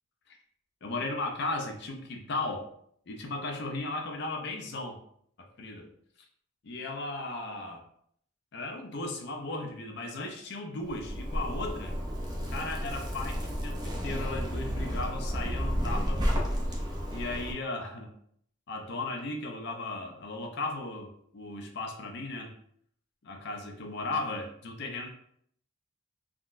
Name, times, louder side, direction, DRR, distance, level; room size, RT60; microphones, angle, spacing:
voice 1, 0.8-2.7 3.1-5.0 5.4-5.9 6.6-7.8 8.5-11.9 12.5-16.3 17.1-18.1 18.7-22.5 23.2-25.1, left 2 dB, 50° left, 3 dB, 0.5 m, -36 dB
Zipper (clothing), 10.9-17.5, equal, 20° right, 0.4 m, -32 dB
3.7 x 2.2 x 2.4 m, 0.65 s
head